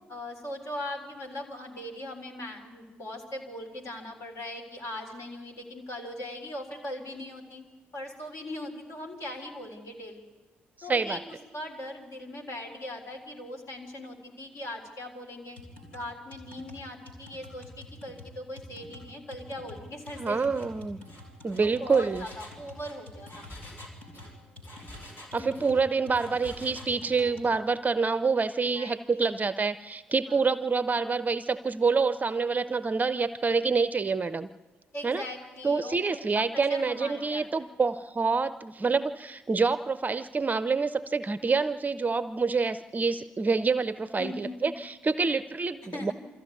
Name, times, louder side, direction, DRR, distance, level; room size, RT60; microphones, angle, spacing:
voice 1, 0.1-7.6 7.9-10.3 10.8-11.2 11.5-15.6 15.9-20.5 21.6-23.5 25.4-25.7 28.8-28.9 34.9-37.7 44.2-44.7 45.8-46.1, left 1 dB, 55° left, 1 dB, 4.0 m, -40 dB
voice 2, 10.8-11.2 20.2-21.0 21.4-22.2 25.3-34.5 35.0-35.2 35.6-46.1, right 4 dB, 30° right, 13 dB, 0.6 m, -27 dB
sound 1, 15.6-27.5, left 1 dB, 90° left, 3.6 m, -48 dB
Engine, 20.0-20.2 20.5-20.7 21.0-25.8 26.2-27.0, left 1 dB, 40° left, 5.6 m, -49 dB
23.5 x 14.5 x 9.3 m, 1.3 s
figure-of-eight pair, 40°, 6 cm